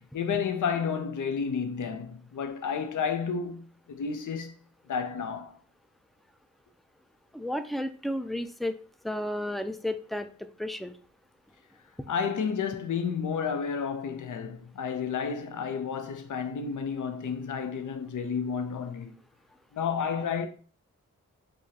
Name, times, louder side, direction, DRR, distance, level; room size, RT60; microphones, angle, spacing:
voice 1, 0.0-4.6 4.9-5.6 12.1-19.1 19.7-20.5, left 6 dB, 70° left, 0.6 m, -31 dB
voice 2, 7.3-8.8 9.0-11.0, left 1 dB, ahead, 0.4 m, -32 dB
4.7 x 2.5 x 2.8 m
cardioid pair, 45°, 32 cm